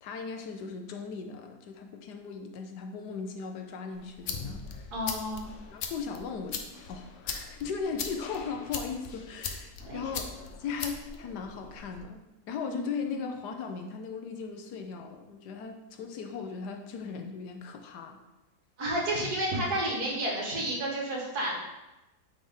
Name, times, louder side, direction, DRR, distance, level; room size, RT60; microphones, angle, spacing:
voice 1, 0.0-4.9 5.7-6.6 6.9-10.3 10.6-18.2, left 5 dB, 85° left, 5 dB, 1.3 m, -38 dB
sound 1, 3.9-12.0, left 5 dB, 60° left, 0.8 m, -40 dB
voice 2, 4.9-5.5 9.9-10.1 12.7-13.2 18.8-21.6, right 1 dB, 70° right, -3 dB, 2.1 m, -31 dB
8.7 x 3.5 x 3.7 m, 1.0 s
omnidirectional pair, 1.7 m